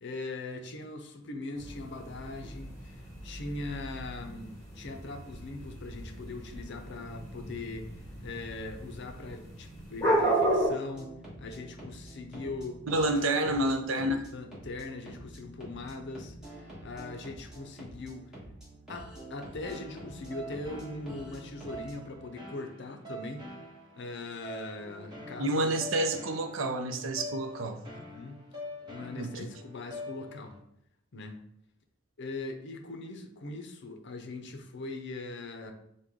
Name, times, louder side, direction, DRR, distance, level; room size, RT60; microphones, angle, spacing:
voice 1, 0.0-7.9 8.2-13.6 14.3-18.3 18.9-23.5 24.0-25.8 27.7-28.4 28.8-30.6 31.1-31.4 32.2-35.7, left 3 dB, 55° left, 5 dB, 0.6 m, -41 dB
sound 1, 1.6-10.7, right 1 dB, 15° left, 1.5 m, -33 dB
sound 2, 10.9-22.1, right 1 dB, 5° right, 1.4 m, -47 dB
voice 2, 12.9-14.2 25.4-27.8 29.2-29.5, right 1 dB, 65° right, 6 dB, 0.5 m, -29 dB
sound 3, 19.6-30.6, left 1 dB, 20° right, 1.1 m, -45 dB
6.1 x 2.2 x 3.6 m, 0.77 s
head